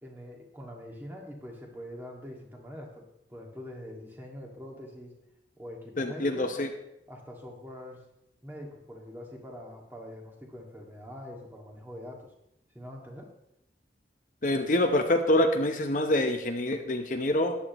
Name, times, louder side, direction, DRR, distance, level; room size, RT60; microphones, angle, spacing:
voice 1, 0.0-5.2 5.6-6.5 7.1-8.0 8.4-12.3 12.7-13.3, left 1 dB, 10° right, -1 dB, 2.0 m, -44 dB
voice 2, 6.0-6.7 14.4-17.6, left 1 dB, 45° left, 5 dB, 0.8 m, -26 dB
14.0 x 10.0 x 3.0 m, 0.82 s
head